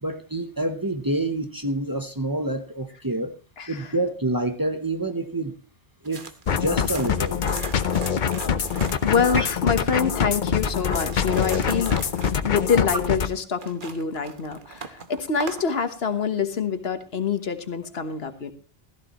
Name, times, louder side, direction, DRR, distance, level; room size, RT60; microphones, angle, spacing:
voice 1, 0.0-3.4 3.7-5.5 6.0-7.4 9.4-9.5, right 1 dB, 20° right, 7 dB, 0.9 m, -27 dB
voice 2, 3.6-3.9 9.0-12.0 12.3-18.5, left 6 dB, 75° left, 9 dB, 1.4 m, -26 dB
sound 1, 6.0-10.0 10.5-15.7, right 4 dB, 55° right, 1.3 m, -39 dB
sound 2, 6.5-13.3, left 7 dB, 55° left, 0.8 m, -24 dB
16.0 x 14.0 x 3.0 m, 0.34 s
omnidirectional pair, 1.0 m